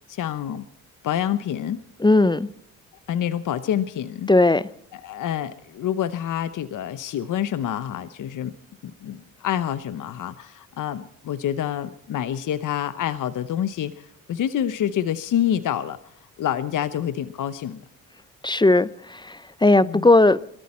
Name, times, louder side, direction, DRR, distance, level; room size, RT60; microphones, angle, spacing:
voice 1, 0.1-0.7 1.0-1.8 3.1-4.3 4.9-8.5 8.8-16.0 16.4-17.8 19.8-20.1, left 10 dB, 65° left, 0.9 m, -27 dB
voice 2, 2.0-2.5 4.3-4.7 18.4-20.4, left 2 dB, 15° left, 0.6 m, -17 dB
23.0 x 13.5 x 4.3 m
cardioid pair, 75°, 34 cm